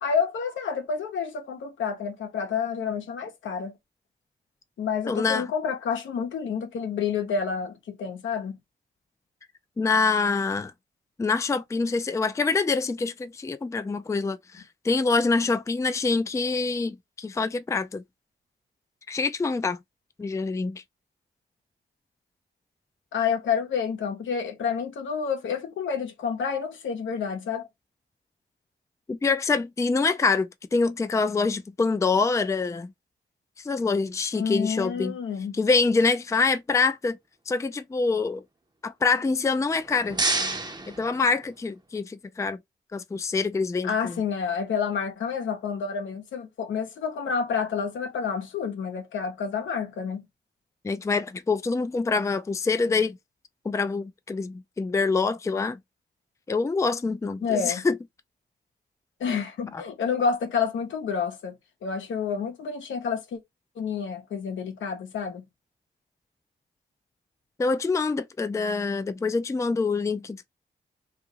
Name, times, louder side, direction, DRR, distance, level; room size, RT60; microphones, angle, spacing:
voice 1, 0.0-3.8 4.8-8.6 23.1-27.7 34.3-35.6 43.8-50.3 57.4-57.9 59.2-61.6 61.8-63.4 63.8-65.4, left 6 dB, 80° left, 0.8 m, -29 dB
voice 2, 5.1-5.4 9.8-10.7 11.2-18.0 19.1-19.8 20.2-20.8 29.1-32.9 33.6-35.1 35.5-37.2 37.5-38.4 38.8-40.2 41.0-42.6 42.9-44.2 50.8-53.2 53.7-55.8 56.5-57.9 67.6-70.5, left 4 dB, 15° left, 0.4 m, -25 dB
sound 1, 39.7-41.8, right 2 dB, 20° right, 0.7 m, -30 dB
2.5 x 2.5 x 2.8 m
supercardioid pair, 45°, 19 cm